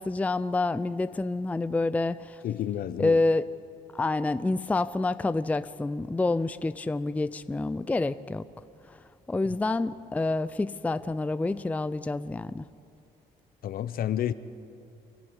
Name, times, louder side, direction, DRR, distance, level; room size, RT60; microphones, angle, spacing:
voice 1, 0.0-2.4 3.0-3.4 3.9-8.5 8.9-9.0 9.3-12.6, left 2 dB, 10° left, 0.4 m, -28 dB
voice 2, 2.4-3.2 13.6-14.3, left 11 dB, 60° left, 0.9 m, -30 dB
29.0 x 12.5 x 9.7 m
cardioid pair, 110°, 17 cm